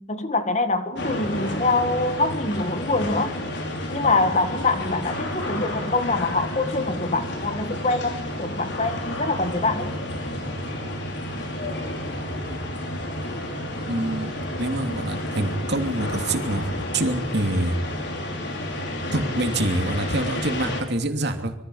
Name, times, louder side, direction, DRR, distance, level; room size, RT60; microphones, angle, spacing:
voice 1, 0.0-3.4 3.9-9.9, left 3 dB, 35° left, 1.9 m, -24 dB
sound 1, 1.0-20.8, left 1 dB, 60° left, 5.3 m, -30 dB
voice 2, 13.9-17.8 19.1-21.5, right 1 dB, 55° right, 2.9 m, -26 dB
26.0 x 23.5 x 5.7 m
head